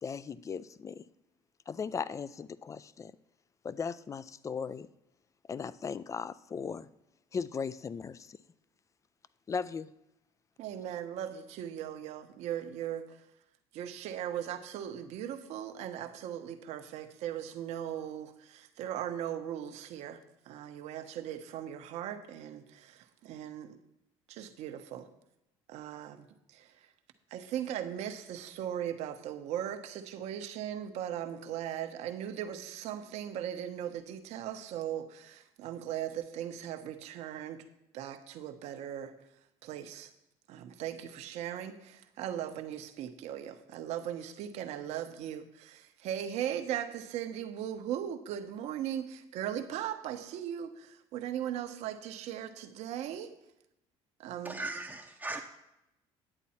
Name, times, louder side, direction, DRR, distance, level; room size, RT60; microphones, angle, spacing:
voice 1, 0.0-1.0 1.7-3.1 3.6-4.9 5.5-6.9 7.3-8.4 9.5-9.9, left 6 dB, 25° left, 17 dB, 0.4 m, -37 dB
voice 2, 10.6-13.2 13.7-23.8 24.3-25.1 25.7-26.9 27.3-37.6 37.9-39.1 39.6-40.1 40.5-53.3 54.2-54.6, right 10 dB, 70° right, 8 dB, 1.0 m, -38 dB
voice 3, 54.4-55.4, right 2 dB, 15° right, 1 dB, 0.8 m, -38 dB
9.9 x 8.2 x 4.3 m, 0.87 s
cardioid pair, 100°, 12 cm